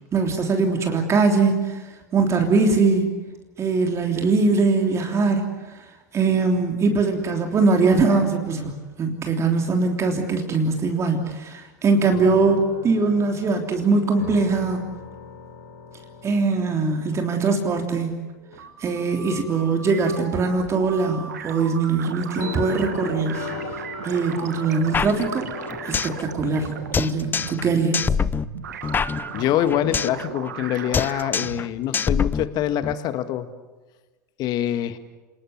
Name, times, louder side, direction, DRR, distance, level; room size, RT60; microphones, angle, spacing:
voice 1, 0.1-1.8 2.1-3.1 3.6-5.5 6.1-14.9 16.2-18.2 18.8-23.5 24.0-25.5 25.8-27.9, right 4 dB, 30° right, 4 dB, 3.3 m, -21 dB
sound 1, 12.1-18.2 18.5-18.8 19.8-20.5 22.4-27.6, left 7 dB, 70° left, 3.7 m, -39 dB
sound 2, 18.4-31.6, right 8 dB, 80° right, 2.1 m, -36 dB
sound 3, 24.9-26.2 26.5-26.6 26.9-27.7 27.9-30.2 30.5-30.7 30.9-31.7 31.9-32.9, left 6 dB, 20° left, 0.7 m, -25 dB
voice 2, 29.3-33.5 34.4-35.0, left 12 dB, 45° left, 11 dB, 1.8 m, -25 dB
28.0 x 20.0 x 8.0 m, 1.2 s
hypercardioid pair, 90°, 9 cm